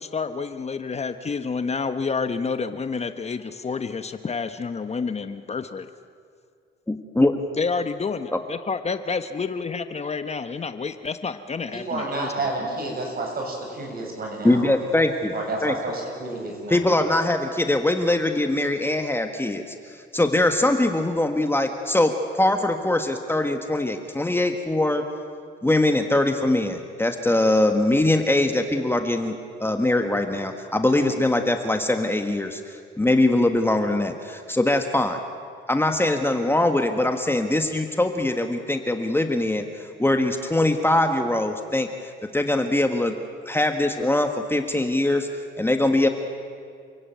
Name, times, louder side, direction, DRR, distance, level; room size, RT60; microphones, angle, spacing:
voice 1, 0.0-5.9 7.6-12.3, left 5 dB, 35° left, 10 dB, 1.0 m, -29 dB
voice 2, 6.9-7.4 8.3-8.4 14.4-15.3 15.6-15.7 16.7-25.0 25.6-35.2 35.7-43.1 43.4-45.3 45.6-46.1, left 1 dB, 10° left, 6 dB, 1.5 m, -22 dB
voice 3, 11.7-14.7 15.3-16.9, right 2 dB, 50° right, 1 dB, 7.5 m, -30 dB
28.5 x 17.0 x 9.2 m, 2.3 s
cardioid pair, 90°, 20 cm